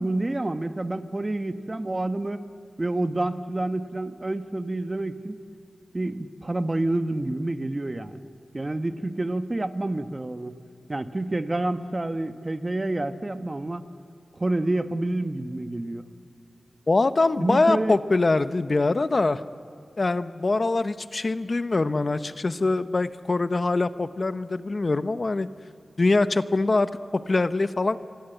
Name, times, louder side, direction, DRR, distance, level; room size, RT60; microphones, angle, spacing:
voice 1, 0.0-2.4 2.8-5.4 5.9-8.2 8.5-10.6 10.9-13.8 14.4-16.1 17.4-18.0, right 2 dB, 30° right, 9 dB, 1.2 m, -28 dB
voice 2, 16.9-19.4 20.0-25.5 26.0-28.0, left 3 dB, 50° left, 11 dB, 0.8 m, -23 dB
28.5 x 23.5 x 8.1 m, 2.4 s
wide cardioid pair, 60°, 0 cm